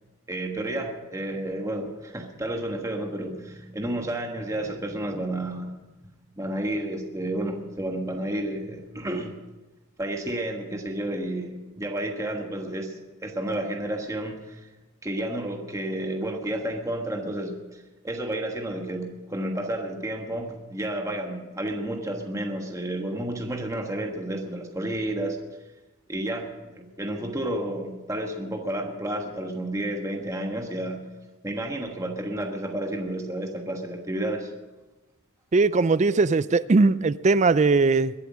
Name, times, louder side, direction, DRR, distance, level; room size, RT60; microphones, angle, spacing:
voice 1, 0.3-5.7 6.0-9.4 10.0-14.7 15.0-25.4 26.1-31.0 31.4-34.5, right 1 dB, 15° right, 2 dB, 1.3 m, -31 dB
voice 2, 35.5-38.1, right 3 dB, 35° right, 16 dB, 0.4 m, -20 dB
22.5 x 8.1 x 6.2 m, 1.1 s
head